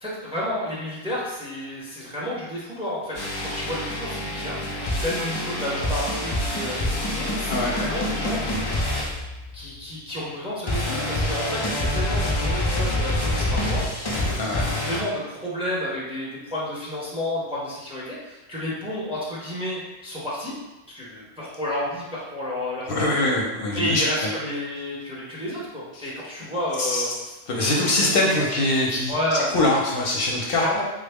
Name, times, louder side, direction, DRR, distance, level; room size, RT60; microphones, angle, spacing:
voice 1, 0.0-3.2 3.5-9.0 9.5-13.9 14.4-20.5 20.9-23.3 23.7-27.1 27.6-28.0 28.4-28.5 29.1-29.6 30.6-30.8, left 1 dB, 5° right, -6 dB, 0.6 m, -31 dB
sound 1, 3.1-9.8 10.7-15.0, left 1 dB, 40° left, 0.3 m, -26 dB
voice 2, 14.3-14.8 22.9-24.3 26.0-26.1 26.8-27.0 27.5-29.1 29.5-30.6, left 2 dB, 65° left, -3 dB, 0.7 m, -23 dB
3.7 x 2.0 x 3.4 m, 1.1 s
omnidirectional pair, 1.1 m